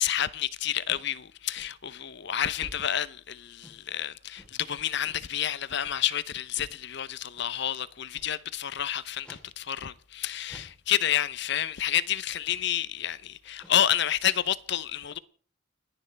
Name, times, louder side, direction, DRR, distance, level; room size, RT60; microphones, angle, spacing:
voice 1, 0.0-15.2, left 10 dB, 55° left, 0.7 m, -29 dB
sound 1, 0.9-1.1 1.5-1.7 2.6-3.0 3.6-3.9 4.3-4.6 5.0-5.3 5.8-6.0 6.5-6.8 7.4-7.5 8.1-8.4 9.2-9.5 9.8-9.9 10.5-10.9 11.5-11.7 12.4-12.7 13.5-13.9, equal, 5° left, 3.7 m, -50 dB
30.0 x 11.0 x 3.4 m
head